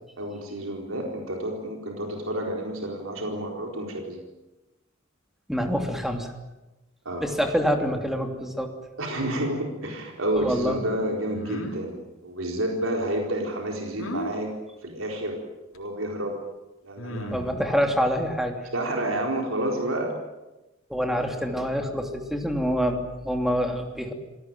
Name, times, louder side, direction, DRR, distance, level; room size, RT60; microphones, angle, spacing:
voice 1, 0.2-4.2 7.0-7.3 9.0-14.5 14.8-15.5 15.7-16.4 16.8-17.8 18.7-20.2, right 1 dB, 75° right, 1 dB, 4.3 m, -30 dB
voice 2, 5.5-6.3 7.2-8.7 10.3-10.8 17.3-18.6 20.9-24.1, equal, ahead, 4 dB, 2.9 m, -26 dB
sound 1, 11.3-11.8 14.0-14.3 15.8-15.9 17.0-17.6, left 1 dB, 90° left, 3.9 m, -34 dB
27.5 x 18.5 x 9.2 m, 1.1 s
head